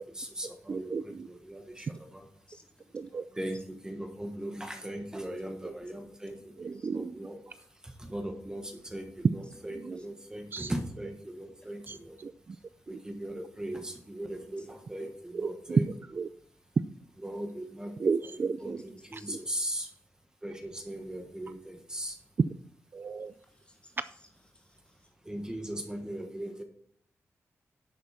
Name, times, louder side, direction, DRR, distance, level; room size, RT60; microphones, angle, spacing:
voice 1, 0.0-2.2 3.3-12.2 12.5-15.9 17.2-18.1 18.6-19.9 20.4-22.2 25.2-26.6, right 1 dB, 15° right, 4 dB, 1.4 m, -39 dB
voice 2, 0.7-1.3 2.9-3.3 5.6-5.7 6.6-7.2 9.7-10.0 10.5-10.7 11.9-12.6 12.9-13.0 13.7-13.8 15.3-16.3 16.8-16.9 18.0-18.8 19.1-19.4 22.9-23.3, right 5 dB, 40° right, 13 dB, 0.4 m, -32 dB
voice 3, 2.0-3.4 4.7-4.8 6.3-6.4 6.8-6.9 8.4-8.8 10.0-10.1 10.3-10.5 11.6-12.3 14.5-14.8 18.9-19.4 23.5-24.0 24.5-25.1, left 1 dB, 20° left, 0 dB, 3.0 m, -60 dB
11.0 x 8.3 x 4.3 m, 0.65 s
wide cardioid pair, 125°, 5 cm